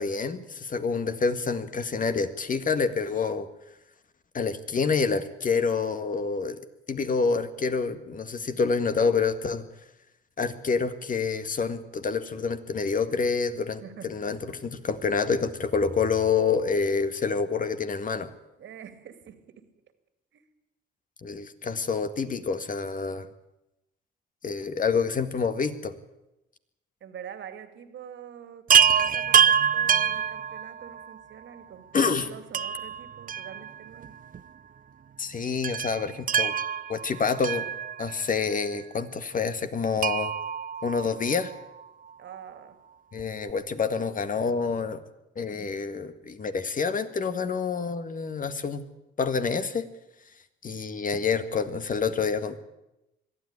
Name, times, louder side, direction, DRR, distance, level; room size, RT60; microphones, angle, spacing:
voice 1, 0.0-3.5 4.3-6.6 6.9-9.6 10.4-18.3 21.2-23.3 24.4-25.9 31.9-32.3 35.2-36.5 36.9-37.7 38.0-40.3 40.8-41.5 43.1-45.0 45.4-48.8 49.2-49.9 50.6-52.6, left 5 dB, 40° left, 10 dB, 1.9 m, -27 dB
voice 2, 13.8-14.6 18.6-19.7 20.3-20.4 27.0-34.2 42.2-42.8, right 9 dB, 70° right, 10 dB, 2.6 m, -45 dB
Chime, 28.7-31.1 32.5-34.1 34.3-34.4 35.6-38.3 40.0-41.6 43.2-43.3 43.5-43.6, right 8 dB, 45° right, 0.7 m, -25 dB
22.0 x 13.5 x 9.9 m, 0.92 s
cardioid pair, 90°, 20 cm